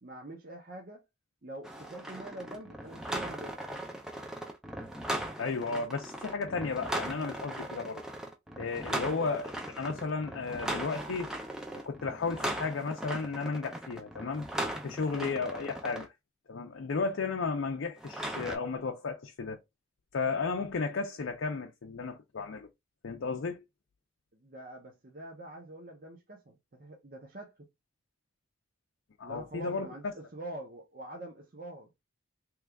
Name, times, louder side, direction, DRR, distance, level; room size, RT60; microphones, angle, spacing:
voice 1, 0.0-1.0 1.4-3.6 8.9-9.3 15.1-15.4 24.4-27.7 29.2-31.9, right 1 dB, 45° right, 0.7 m, -45 dB
sound 1, 1.6-16.1 18.0-18.6, right 1 dB, 5° right, 0.4 m, -38 dB
voice 2, 5.4-8.0 8.6-11.3 11.7-14.5 14.8-16.1 16.5-19.6 20.1-22.7 23.0-23.6 29.2-30.1, left 4 dB, 70° left, 0.5 m, -34 dB
3.1 x 2.4 x 3.4 m
head